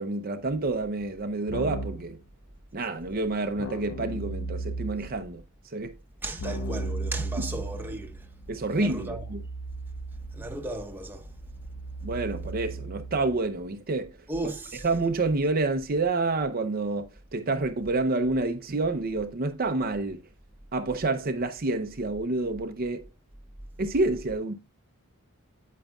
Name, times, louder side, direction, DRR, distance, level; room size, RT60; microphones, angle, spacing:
voice 1, 0.0-2.2 2.7-6.0 7.4-7.5 8.5-9.4 12.0-14.2 14.8-20.2 20.7-23.0 23.8-24.5, right 3 dB, 45° right, 0.7 m, -28 dB
Keyboard (musical), 1.5-2.1 3.6-5.2 6.4-13.4, right 2 dB, 75° left, 1.0 m, -36 dB
voice 2, 6.2-8.3 8.7-9.2 10.3-11.3 14.3-14.9, right 2 dB, 10° right, 1.2 m, -35 dB
8.9 x 8.4 x 2.3 m
head